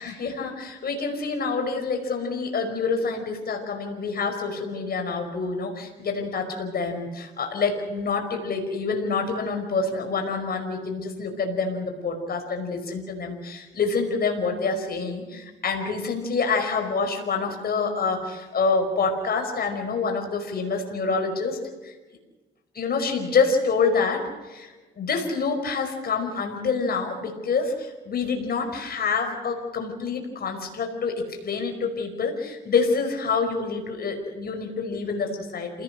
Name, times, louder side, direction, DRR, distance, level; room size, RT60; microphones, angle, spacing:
voice 1, 0.0-21.9 22.7-35.8, left 4 dB, 50° left, 4 dB, 5.3 m, -27 dB
28.0 x 18.0 x 6.5 m, 1.2 s
cardioid pair, 90°, 20 cm